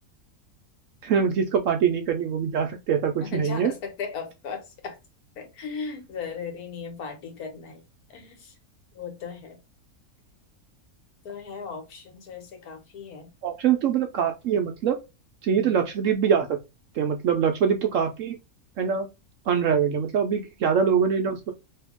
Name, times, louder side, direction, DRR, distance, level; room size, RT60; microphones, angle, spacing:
voice 1, 1.0-3.7 13.4-15.0 15.4-16.5 16.9-18.4 18.8-19.1 19.5-21.5, right 7 dB, 70° right, 0.9 m, -23 dB
voice 2, 3.2-5.0 5.4-7.8 8.1-8.5 8.9-9.6 11.2-13.3 15.5-15.8, left 5 dB, 85° left, 1.5 m, -37 dB
2.8 x 2.8 x 3.4 m
omnidirectional pair, 1.5 m